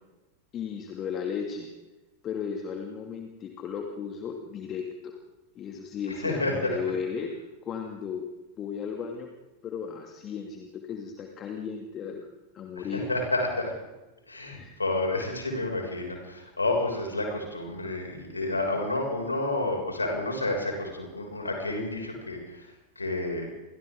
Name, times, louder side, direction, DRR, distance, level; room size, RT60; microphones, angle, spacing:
voice 1, 0.5-1.7 2.2-5.2 5.5-7.3 7.6-8.3 8.6-9.3 9.6-12.3 12.5-13.1 14.6-14.7, left 6 dB, 30° left, 3 dB, 2.6 m, -35 dB
voice 2, 6.1-6.8 12.7-13.7 14.3-23.5, left 2 dB, 80° left, 1 dB, 6.6 m, -30 dB
29.5 x 25.0 x 3.9 m, 1.1 s
figure-of-eight pair, 90°, 0 cm